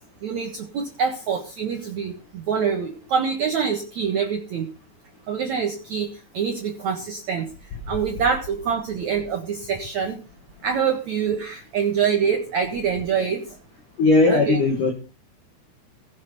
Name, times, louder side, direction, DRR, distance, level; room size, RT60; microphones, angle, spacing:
voice 1, 0.2-4.7 5.3-10.2 10.6-13.6 14.3-14.6, right 6 dB, 65° right, 4 dB, 1.8 m, -25 dB
voice 2, 14.0-14.9, left 3 dB, 50° left, 3 dB, 2.9 m, -17 dB
17.0 x 8.4 x 5.3 m, 0.32 s
omnidirectional pair, 5.7 m